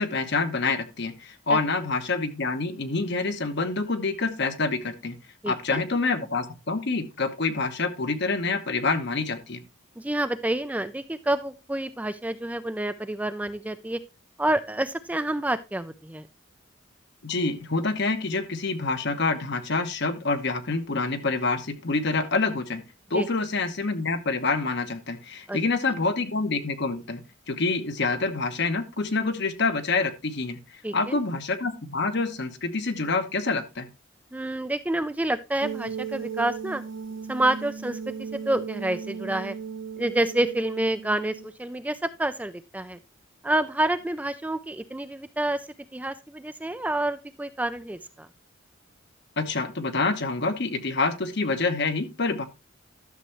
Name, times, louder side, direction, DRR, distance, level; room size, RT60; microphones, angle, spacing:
voice 1, 0.0-5.2 5.5-9.6 17.2-22.8 23.1-33.9 49.4-52.5, left 3 dB, 55° left, 9 dB, 1.0 m, -27 dB
voice 2, 5.4-5.8 10.0-14.0 14.4-16.3 23.1-23.3 25.5-25.6 30.8-31.2 34.3-36.8 37.3-39.5 40.0-43.0 43.4-48.3, right 1 dB, 5° right, 11 dB, 0.4 m, -28 dB
sound 1, 35.6-41.5, right 6 dB, 60° right, 0.6 m, -36 dB
12.0 x 6.7 x 3.0 m, 0.25 s
head